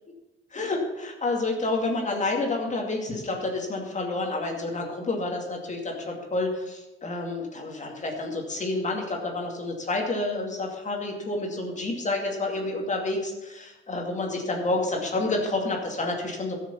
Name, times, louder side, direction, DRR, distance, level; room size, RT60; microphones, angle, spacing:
voice 1, 0.5-16.6, left 2 dB, 35° left, 1 dB, 2.4 m, -29 dB
12.0 x 6.6 x 7.0 m, 1.0 s
cardioid pair, 90°, 20 cm